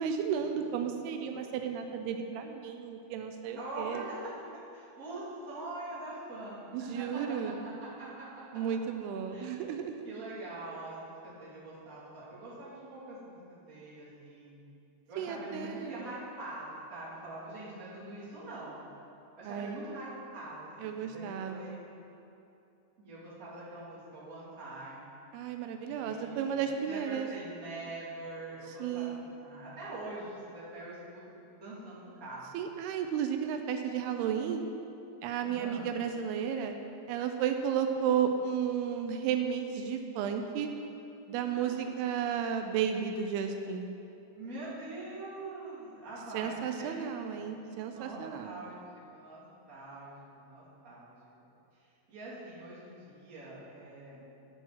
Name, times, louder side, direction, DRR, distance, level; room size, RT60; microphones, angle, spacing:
voice 1, 0.0-4.1 6.7-7.6 8.5-10.1 15.2-16.0 19.4-19.8 20.8-21.8 25.3-27.3 28.8-29.3 32.5-34.7 35.2-36.8 37.1-40.7 41.3-43.9 46.3-48.6, right 8 dB, 85° right, 6 dB, 2.6 m, -33 dB
voice 2, 3.6-4.2 4.7-8.6 9.3-9.6 10.0-14.6 15.1-18.8 19.4-21.8 23.0-25.1 25.8-32.4 35.4-35.9 41.5-41.9 44.4-47.5 47.8-48.8 49.1-51.2 52.1-54.2, right 2 dB, 25° right, -9 dB, 2.7 m, -44 dB
12.5 x 5.6 x 5.9 m, 2.8 s
omnidirectional pair, 4.5 m